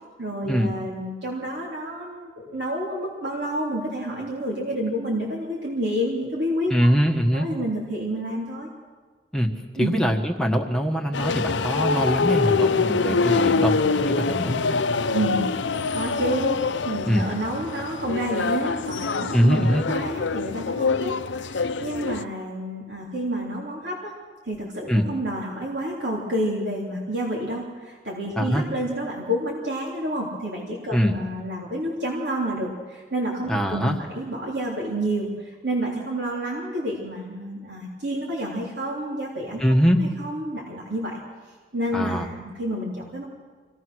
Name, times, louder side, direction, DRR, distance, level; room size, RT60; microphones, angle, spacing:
voice 1, 0.2-6.9 7.3-8.7 9.8-10.0 15.1-24.1 24.4-39.6 40.0-41.2 41.7-43.3, right 1 dB, 70° right, -4 dB, 3.4 m, -29 dB
voice 2, 6.7-7.5 9.3-9.5 9.8-14.8 17.1-17.3 19.3-19.8 24.9-25.1 28.4-28.6 30.9-31.2 33.5-34.0 39.6-40.0 41.9-42.2, equal, 5° left, 1 dB, 1.5 m, -22 dB
sound 1, 11.1-22.2, left 4 dB, 85° left, 0.7 m, -25 dB
25.5 x 18.0 x 6.3 m, 1.5 s
head